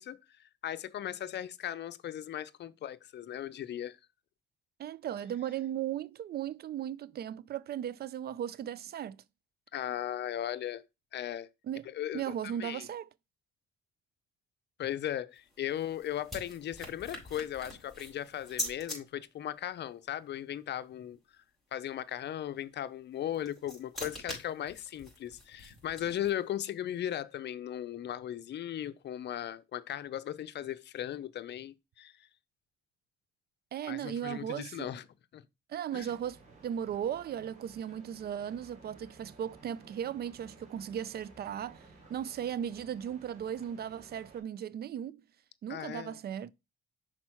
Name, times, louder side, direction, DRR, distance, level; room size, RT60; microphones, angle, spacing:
voice 1, 0.0-4.0 9.7-10.8 11.1-11.5 11.8-12.9 14.8-21.4 21.7-32.3 33.9-35.1 35.3-35.4 35.9-36.1 45.7-46.2, left 11 dB, 60° left, 0.6 m, -37 dB
voice 2, 4.8-9.2 11.7-11.8 12.1-13.1 33.7-34.9 35.7-45.2 45.6-46.5, right 9 dB, 55° right, 0.4 m, -37 dB
sound 1, 15.4-19.0 23.1-26.5, left 1 dB, ahead, 4.4 m, -43 dB
sound 2, 36.0-44.4, right 3 dB, 40° right, 2.9 m, -56 dB
6.1 x 4.4 x 4.4 m
cardioid pair, 90°, 20 cm